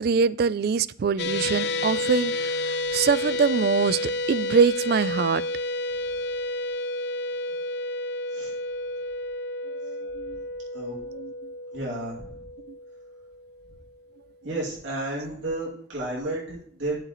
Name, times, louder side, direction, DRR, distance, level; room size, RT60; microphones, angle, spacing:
voice 1, 0.0-5.4 9.8-10.4 11.1-11.3, right 5 dB, 50° right, 0.3 m, -24 dB
sound 1, 1.2-13.5, left 2 dB, 55° left, 0.4 m, -30 dB
voice 2, 11.7-12.4 14.4-17.0, right 2 dB, 75° right, 2.6 m, -32 dB
11.5 x 6.5 x 3.1 m
head